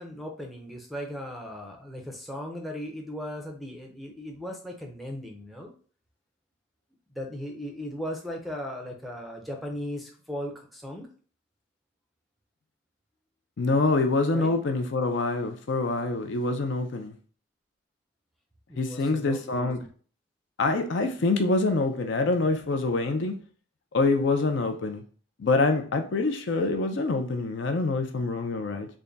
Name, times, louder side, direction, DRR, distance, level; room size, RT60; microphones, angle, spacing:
voice 1, 0.0-5.7 7.1-11.1 14.3-14.5 18.7-19.9, equal, ahead, 0.5 m, -37 dB
voice 2, 13.6-17.1 18.8-19.8 20.6-23.4 23.9-25.0 25.4-28.9, left 3 dB, 55° left, 0.4 m, -25 dB
3.5 x 2.2 x 3.9 m
head